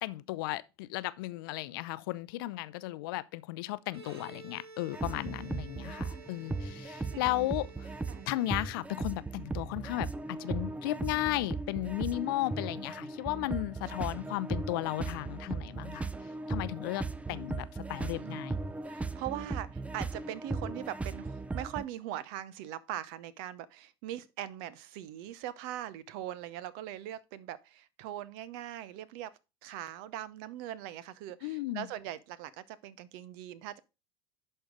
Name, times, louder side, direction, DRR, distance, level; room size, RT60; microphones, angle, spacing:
voice 1, 0.0-7.9 8.3-10.1 10.4-16.1 16.5-18.6 31.4-31.9, left 17 dB, 60° left, 0.5 m, -35 dB
Bowed string instrument, 3.9-9.1, right 2 dB, 85° right, 1.4 m, -52 dB
sound 1, 4.9-21.8, right 3 dB, 10° right, 0.6 m, -37 dB
voice 2, 5.4-5.8 7.1-7.2 8.1-8.3 14.0-14.2 17.9-18.4 18.8-29.3 29.6-33.8, right 12 dB, 60° right, 0.8 m, -41 dB
11.0 x 4.4 x 4.9 m
figure-of-eight pair, 70°, 13 cm